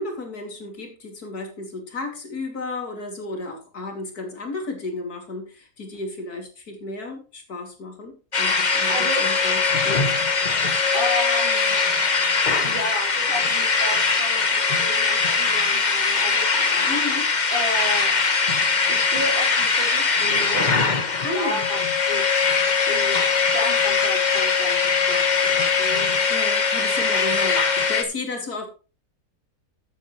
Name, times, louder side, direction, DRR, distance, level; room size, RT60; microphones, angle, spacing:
voice 1, 0.0-10.0 16.9-17.3 21.2-21.6 26.3-28.7, left 2 dB, 85° left, 3 dB, 3.2 m, -33 dB
sound 1, 8.3-28.0, left 5 dB, 30° left, 1.2 m, -21 dB
voice 2, 8.9-9.3 10.9-11.8 12.6-16.5 17.5-18.2 18.9-20.9 21.3-21.8 22.1-22.6 22.9-26.1, equal, 35° right, -1 dB, 4.1 m, -32 dB
13.0 x 8.3 x 3.2 m, 0.33 s
omnidirectional pair, 1.6 m